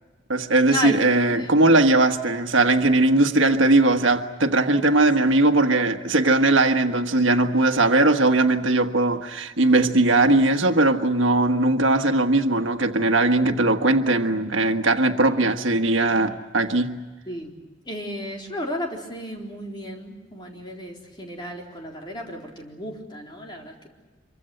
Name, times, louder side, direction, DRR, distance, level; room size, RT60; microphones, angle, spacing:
voice 1, 0.3-17.0, right 2 dB, 85° right, 1.5 m, -19 dB
voice 2, 17.9-23.9, left 1 dB, 25° left, 4.0 m, -33 dB
26.0 x 24.0 x 7.9 m
head